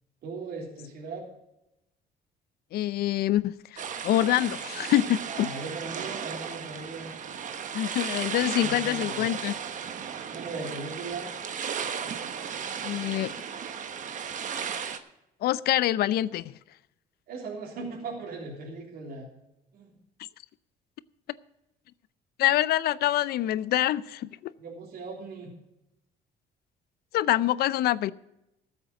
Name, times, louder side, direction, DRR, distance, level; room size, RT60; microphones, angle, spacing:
voice 1, 0.2-1.2 5.3-7.1 8.6-9.3 10.3-11.3 17.3-19.3 19.7-19.9 24.6-25.5, right 3 dB, 65° right, 3.5 m, -38 dB
voice 2, 2.7-5.5 7.7-9.5 12.8-13.3 15.4-16.5 22.4-24.5 27.1-28.1, left 13 dB, 65° left, 0.5 m, -25 dB
sound 1, 3.8-15.0, right 7 dB, 50° right, 1.1 m, -35 dB
14.0 x 8.0 x 6.0 m
cardioid pair, 110°, 17 cm